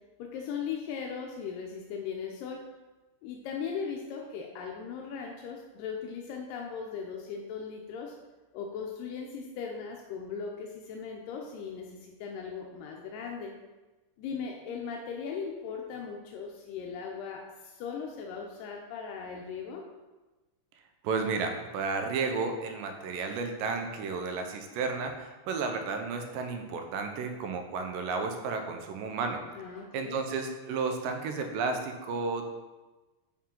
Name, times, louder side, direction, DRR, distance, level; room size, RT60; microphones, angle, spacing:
voice 1, 0.2-2.7 3.2-8.1 8.5-13.5 14.2-19.8 29.5-30.2, left 6 dB, 90° left, 0 dB, 2.3 m, -38 dB
voice 2, 21.0-29.4 29.9-32.5, right 4 dB, 90° right, 5 dB, 2.4 m, -32 dB
7.2 x 4.4 x 3.7 m, 1.2 s
omnidirectional pair, 3.8 m